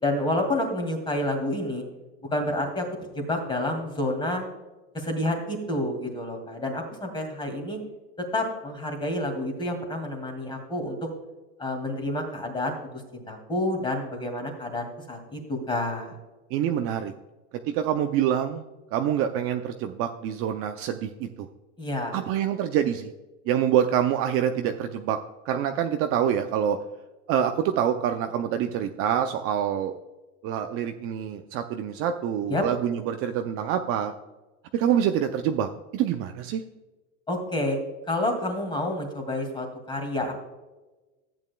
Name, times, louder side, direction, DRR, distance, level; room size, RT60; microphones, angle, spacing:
voice 1, 0.0-1.8 2.3-2.9 3.1-4.5 4.9-7.8 8.3-11.1 11.6-12.8 13.1-16.1 21.8-22.3 32.5-32.6 37.3-37.8 38.1-40.3, left 1 dB, 15° left, 4 dB, 2.2 m, -29 dB
voice 2, 16.5-17.1 17.7-18.6 18.9-21.5 22.1-23.1 23.5-25.2 25.4-26.8 27.3-29.9 30.4-34.1 34.7-36.6, right 9 dB, 40° right, 6 dB, 0.5 m, -26 dB
14.0 x 8.9 x 2.2 m, 1.1 s
supercardioid pair, 135°, 36 cm